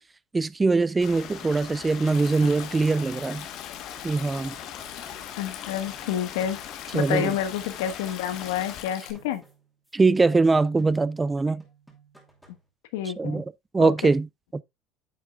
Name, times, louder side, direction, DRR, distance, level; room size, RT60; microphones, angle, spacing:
voice 1, 0.3-3.5 4.0-4.6 6.9-7.3 9.9-11.6 13.2-13.4 13.7-14.3 14.5-14.6, right 3 dB, 15° right, 0.3 m, -22 dB
Stream, 1.0-8.8, left 9 dB, 50° left, 1.3 m, -41 dB
Stream 2, 2.1-9.1, left 10 dB, 70° left, 1.5 m, -43 dB
sound 1, 4.0-7.0 7.2-9.9 10.2-11.3 11.6-12.7, right 2 dB, ahead, 2.6 m, -57 dB
voice 2, 5.4-6.6 6.9-9.4 12.9-13.4 13.8-14.1, left 10 dB, 85° left, 1.3 m, -29 dB
9.3 x 7.3 x 2.3 m
supercardioid pair, 110°, 0 cm